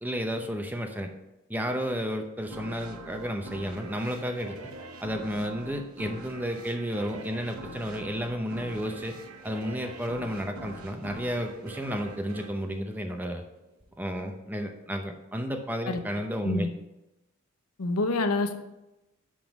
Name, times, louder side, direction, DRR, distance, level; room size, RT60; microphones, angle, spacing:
voice 1, 0.0-1.1 1.5-4.5 5.0-9.1 9.4-13.4 14.0-16.7, equal, 10° right, 4 dB, 0.7 m, -32 dB
sound 1, 2.5-13.7, right 2 dB, 80° right, 0.9 m, -44 dB
voice 2, 17.8-18.6, left 2 dB, 85° left, 8 dB, 0.8 m, -27 dB
10.5 x 3.8 x 5.2 m, 0.96 s
head